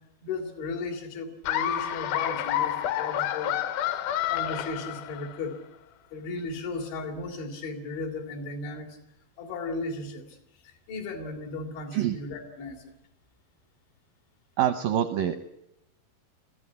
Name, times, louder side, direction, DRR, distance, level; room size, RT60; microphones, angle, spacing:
voice 1, 0.2-3.5 3.9-5.6 6.1-9.0 9.4-10.4 10.6-12.9, left 3 dB, 85° left, 3 dB, 5.4 m, -36 dB
Laughter, 1.4-5.5, left 11 dB, 70° left, 2.6 m, -29 dB
voice 2, 14.6-15.4, right 10 dB, 80° right, 9 dB, 2.0 m, -25 dB
22.5 x 15.5 x 9.5 m, 0.85 s
omnidirectional pair, 5.1 m